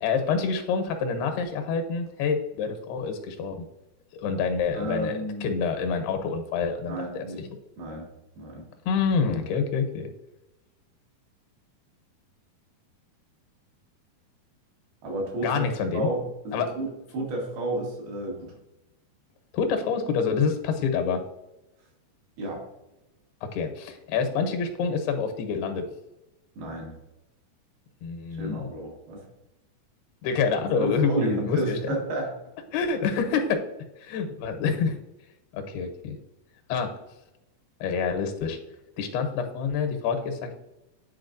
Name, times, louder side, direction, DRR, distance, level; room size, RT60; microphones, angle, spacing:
voice 1, 0.0-3.6 4.1-7.5 8.9-10.1 15.4-16.1 16.5-16.7 19.5-21.2 23.4-25.9 28.0-28.7 30.2-32.0 32.7-33.6 34.0-35.0 35.5-36.2 36.7-37.0 37.8-38.6 39.0-40.5, left 5 dB, 85° left, 6 dB, 2.8 m, -27 dB
voice 2, 4.7-5.5 6.9-7.4 7.8-8.1 8.4-8.7 15.0-15.7 15.9-16.9 17.1-18.5 22.4-22.6 26.6-26.9 28.3-29.3 30.3-30.4 30.7-32.3, right 1 dB, 75° right, -2 dB, 3.4 m, -31 dB
9.6 x 4.2 x 2.5 m, 0.94 s
omnidirectional pair, 4.5 m